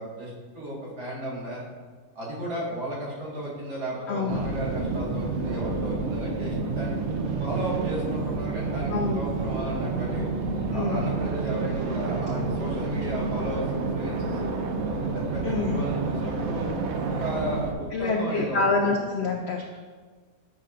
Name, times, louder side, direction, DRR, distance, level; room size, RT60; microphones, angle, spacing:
voice 1, 0.0-1.6 2.2-6.9 7.4-10.3 10.7-14.5 14.9-16.7 17.1-18.9, right 1 dB, 85° right, -6 dB, 2.2 m, -34 dB
voice 2, 4.1-4.5 8.9-9.2 10.7-11.1 15.4-15.8 17.9-19.8, left 3 dB, 85° left, 2 dB, 0.5 m, -27 dB
sound 1, 4.3-17.7, right 4 dB, 65° right, 0.7 m, -29 dB
7.4 x 5.5 x 2.4 m, 1.5 s
omnidirectional pair, 1.7 m